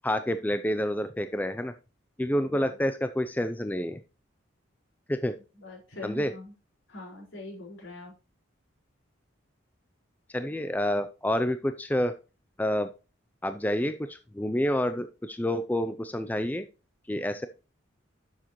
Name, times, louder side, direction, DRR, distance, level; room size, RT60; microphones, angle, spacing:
voice 1, 0.0-1.7 2.2-4.0 5.1-5.3 6.0-6.3 10.3-12.1 12.6-12.9 13.4-16.7 17.1-17.5, left 1 dB, 10° left, 10 dB, 0.4 m, -28 dB
voice 2, 5.6-6.5 6.9-8.1, left 2 dB, 75° left, -2 dB, 4.7 m, -43 dB
10.0 x 7.3 x 3.0 m, 0.32 s
head